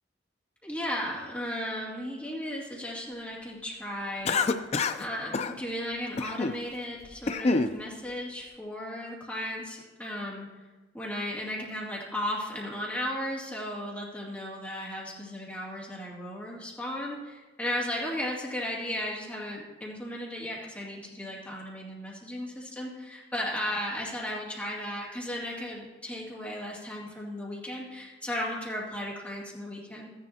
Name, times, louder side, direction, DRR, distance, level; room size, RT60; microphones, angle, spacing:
voice 1, 0.6-4.6 5.0-10.5 10.9-30.1, left 1 dB, 10° left, -5 dB, 2.4 m, -35 dB
Cough, 4.2-5.0 5.3-5.5 6.2-6.6 7.0-7.7, left 3 dB, 35° left, 0.4 m, -27 dB
14.0 x 10.5 x 2.8 m, 1.3 s
head